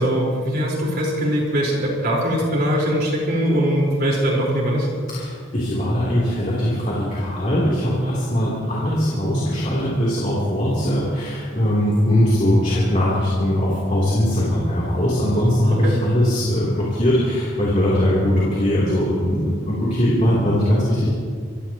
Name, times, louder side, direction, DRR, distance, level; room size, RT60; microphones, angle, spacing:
voice 1, 0.0-4.9 15.8-15.9, equal, 45° right, -3 dB, 4.7 m, -21 dB
voice 2, 5.1-21.1, equal, 35° left, -7 dB, 3.5 m, -20 dB
26.5 x 15.5 x 3.1 m, 2.1 s
head